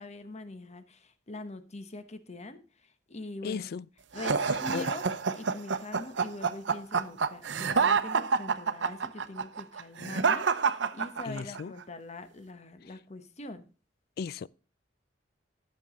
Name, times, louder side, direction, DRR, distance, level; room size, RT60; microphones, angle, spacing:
voice 1, 0.0-3.7 4.1-5.0 5.3-13.6, left 2 dB, 40° left, 1.0 m, -43 dB
voice 2, 3.4-3.8 4.7-4.9 11.2-11.7 14.2-14.5, left 6 dB, 60° left, 0.3 m, -35 dB
sound 1, 4.2-11.6, right 5 dB, 75° right, 0.7 m, -28 dB
12.0 x 6.9 x 3.8 m
head